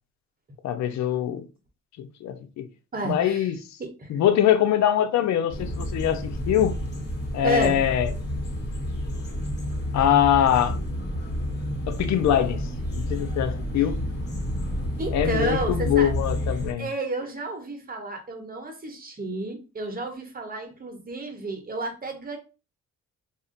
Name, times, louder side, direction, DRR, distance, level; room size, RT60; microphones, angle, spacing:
voice 1, 0.6-1.5 2.0-2.7 3.0-3.6 4.1-6.8 7.3-8.1 9.9-10.8 11.9-12.6 13.0-14.0 15.1-16.9, left 10 dB, 65° left, 0.5 m, -23 dB
voice 2, 2.9-3.5 3.8-4.1 7.4-7.8 13.8-13.9 15.0-16.1 16.8-22.4, right 2 dB, 30° right, 1.0 m, -31 dB
sound 1, 5.5-16.7, equal, 35° left, 1.2 m, -30 dB
2.5 x 2.1 x 3.8 m
cardioid pair, 90°, 30 cm